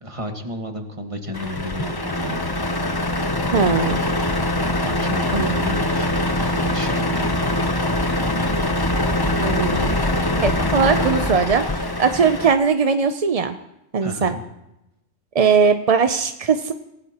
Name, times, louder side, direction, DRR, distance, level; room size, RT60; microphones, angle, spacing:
voice 1, 0.0-2.5 4.8-7.4 14.0-14.4, equal, 25° right, 4 dB, 1.7 m, -32 dB
Truck, 1.3-12.5, left 1 dB, 20° left, 0.7 m, -23 dB
voice 2, 3.5-4.0 5.3-5.5 9.4-9.9 10.4-13.6 13.9-14.3 15.3-16.7, right 5 dB, 45° right, 8 dB, 0.5 m, -19 dB
27.0 x 16.5 x 3.0 m, 0.89 s
omnidirectional pair, 1.3 m